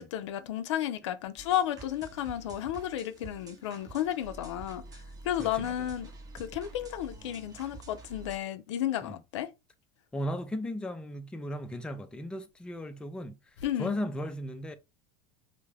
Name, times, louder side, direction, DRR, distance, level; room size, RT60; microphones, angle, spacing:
voice 1, 0.0-4.8 5.2-6.1 6.3-9.5 13.6-14.0, left 11 dB, 85° left, 0.4 m, -32 dB
sound 1, 1.4-8.4, right 3 dB, 25° right, 0.6 m, -48 dB
voice 2, 5.4-5.9 9.0-9.2 10.1-14.7, equal, 5° left, 0.3 m, -36 dB
2.3 x 2.0 x 3.2 m
supercardioid pair, 105°, 15 cm